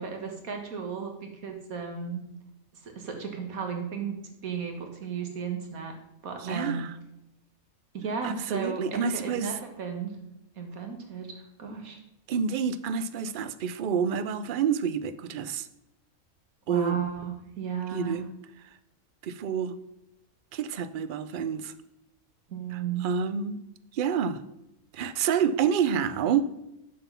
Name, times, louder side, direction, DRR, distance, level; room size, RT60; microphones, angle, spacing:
voice 1, 0.0-2.2 2.8-4.2 4.4-5.9 6.2-6.9 7.9-10.2 10.6-12.0 16.7-18.2 22.5-23.1, right 6 dB, 85° right, 4 dB, 1.9 m, -34 dB
voice 2, 6.4-6.9 8.2-9.6 12.3-15.7 16.7-17.0 17.9-18.2 19.2-19.7 20.5-21.7 22.7-23.6 23.9-24.4 24.9-26.5, right 7 dB, 60° right, 12 dB, 0.5 m, -28 dB
7.6 x 6.0 x 5.6 m, 0.86 s
omnidirectional pair, 1.4 m